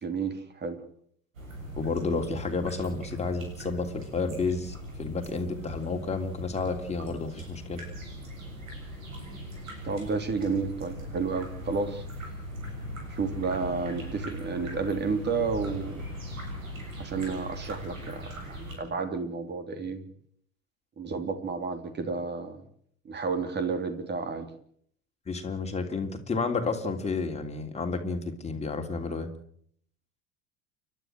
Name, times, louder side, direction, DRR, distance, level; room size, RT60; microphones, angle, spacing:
voice 1, 0.0-0.8 9.8-12.0 13.1-16.0 17.0-20.0 21.0-22.6 23.0-24.5, right 4 dB, 25° right, 8 dB, 3.1 m, -31 dB
sound 1, 1.3-18.7, equal, 75° right, 7.4 m, -40 dB
voice 2, 1.7-7.8 25.3-29.3, left 4 dB, 15° left, 4 dB, 3.1 m, -31 dB
30.0 x 12.5 x 7.7 m, 0.64 s
figure-of-eight pair, 75°, 40 cm